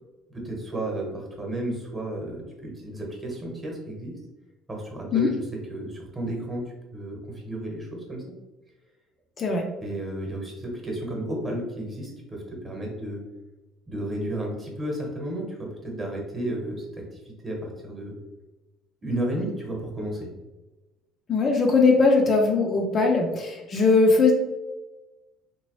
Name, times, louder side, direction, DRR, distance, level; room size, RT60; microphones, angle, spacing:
voice 1, 0.3-4.1 4.7-5.4 5.7-8.2 9.8-13.2 13.9-16.9 17.1-18.1 19.0-20.3, right 1 dB, 15° right, -1 dB, 1.0 m, -32 dB
voice 2, 21.3-24.3, left 4 dB, 35° left, 1 dB, 0.4 m, -20 dB
3.4 x 2.9 x 3.0 m, 1.1 s
cardioid pair, 140°, 0 cm